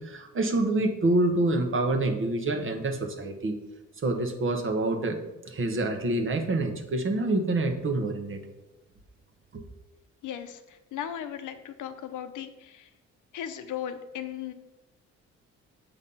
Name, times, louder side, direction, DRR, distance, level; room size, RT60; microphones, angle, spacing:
voice 1, 0.0-3.6 4.0-8.4 9.5-9.6, right 2 dB, 45° right, 6 dB, 1.1 m, -27 dB
voice 2, 10.9-12.5 13.3-14.5, left 10 dB, 80° left, 9 dB, 0.8 m, -36 dB
7.0 x 4.0 x 5.5 m, 1.0 s
cardioid pair, 90°, 30 cm